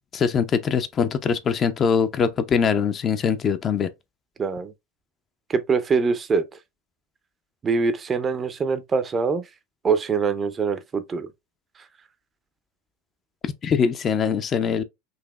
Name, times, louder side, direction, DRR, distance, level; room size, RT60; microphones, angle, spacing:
voice 1, 0.1-3.9 13.6-14.8, left 6 dB, 35° left, 0.4 m, -22 dB
voice 2, 4.4-4.7 5.5-6.4 7.6-9.4 9.8-11.3, right 5 dB, 25° right, 0.5 m, -23 dB
4.0 x 2.7 x 2.3 m
hypercardioid pair, 85°, 0 cm